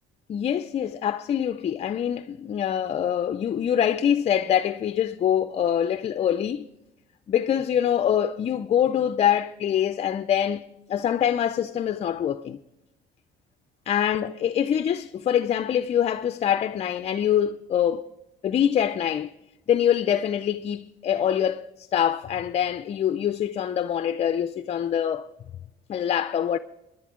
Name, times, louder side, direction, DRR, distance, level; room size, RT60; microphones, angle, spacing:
voice 1, 0.3-6.7 7.3-12.6 13.9-18.0 18.4-19.3 19.7-25.3 25.9-26.6, left 9 dB, 40° left, 0.5 m, -24 dB
20.0 x 11.0 x 3.7 m
cardioid pair, 110°, 17 cm